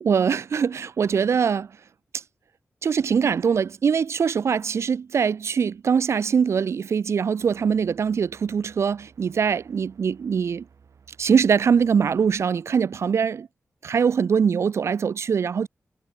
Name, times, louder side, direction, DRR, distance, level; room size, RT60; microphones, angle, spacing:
voice 1, 0.0-1.7 2.1-2.2 2.8-10.6 11.2-13.5 13.8-15.7, right 6 dB, 70° right, 0.6 m, -22 dB
sound 1, 7.4-12.5, right 6 dB, 85° right, 7.7 m, -56 dB
wide cardioid pair, 180°, 5 cm